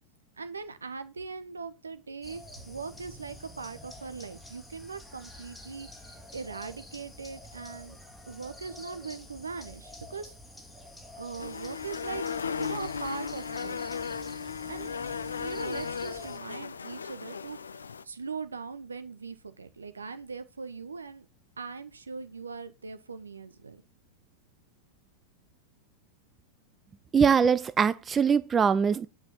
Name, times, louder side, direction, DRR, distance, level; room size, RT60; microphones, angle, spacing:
voice 1, 0.4-5.9 6.3-8.0 8.3-10.3 11.2-12.2 12.5-13.9 14.7-14.9 15.2-21.3 21.6-23.8, right 5 dB, 75° right, 1.0 m, -40 dB
sound 1, 2.2-16.4, left 1 dB, 5° left, 2.2 m, -48 dB
sound 2, 11.4-18.0, left 6 dB, 70° left, 0.4 m, -36 dB
voice 2, 27.1-29.1, right 6 dB, 20° right, 0.4 m, -22 dB
9.0 x 5.0 x 5.9 m
figure-of-eight pair, 90°, 0 cm